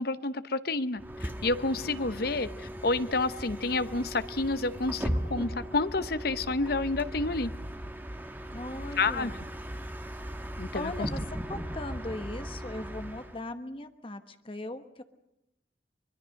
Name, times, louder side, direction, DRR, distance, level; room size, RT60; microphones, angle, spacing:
voice 1, 0.0-7.5 9.0-9.3 10.6-11.1, left 3 dB, 55° left, 13 dB, 0.9 m, -29 dB
Bus, 1.0-13.4, equal, 10° right, 1.4 m, -38 dB
voice 2, 8.5-9.4 10.7-15.0, left 2 dB, 30° left, 9 dB, 1.2 m, -39 dB
24.5 x 21.5 x 6.5 m, 0.88 s
head